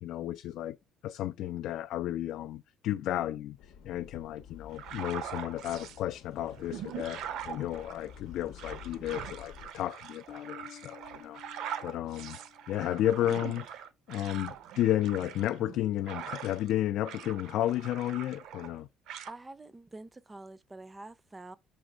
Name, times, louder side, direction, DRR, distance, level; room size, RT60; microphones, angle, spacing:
voice 1, 0.0-0.8 1.0-12.4 12.7-13.7 14.1-18.9, left 12 dB, 65° left, 0.3 m, -33 dB
sound 1, 3.6-9.7, left 8 dB, 90° left, 0.8 m, -51 dB
sound 2, 4.7-6.0 6.5-16.7 17.0-18.8 19.1-19.3, right 9 dB, 70° right, 0.6 m, -43 dB
Bass guitar, 10.3-12.9, left 9 dB, 30° left, 0.7 m, -51 dB
voice 2, 19.3-21.6, right 2 dB, 15° right, 0.4 m, -46 dB
6.2 x 3.2 x 4.9 m
cardioid pair, 145°, 0 cm